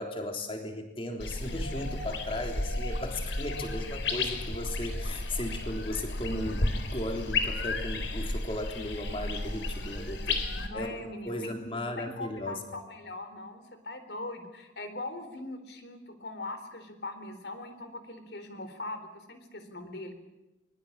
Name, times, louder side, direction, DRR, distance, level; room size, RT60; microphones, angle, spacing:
voice 1, 0.0-10.5 10.7-12.6, left 1 dB, 30° left, 4 dB, 3.6 m, -36 dB
sound 1, 1.2-10.7, left 2 dB, 75° left, 3.7 m, -33 dB
voice 2, 10.7-11.6 12.0-20.2, left 2 dB, 60° left, 9 dB, 3.9 m, -41 dB
24.0 x 22.0 x 8.8 m, 1.0 s
head